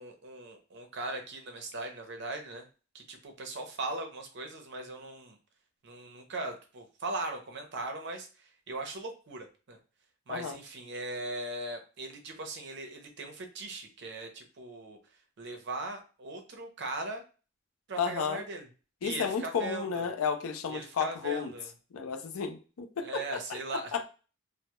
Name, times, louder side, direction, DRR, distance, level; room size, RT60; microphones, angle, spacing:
voice 1, 0.0-2.7 2.9-5.4 5.8-9.8 10.3-15.0 15.4-17.2 17.9-18.7 19.0-20.1 20.7-21.7 23.0-23.9, right 2 dB, 55° right, 4 dB, 0.5 m, -39 dB
voice 2, 18.0-18.4 19.0-21.5 21.9-23.2 23.5-23.6 23.9-24.1, left 6 dB, 90° left, 7 dB, 0.4 m, -32 dB
2.2 x 2.0 x 2.8 m, 0.35 s
head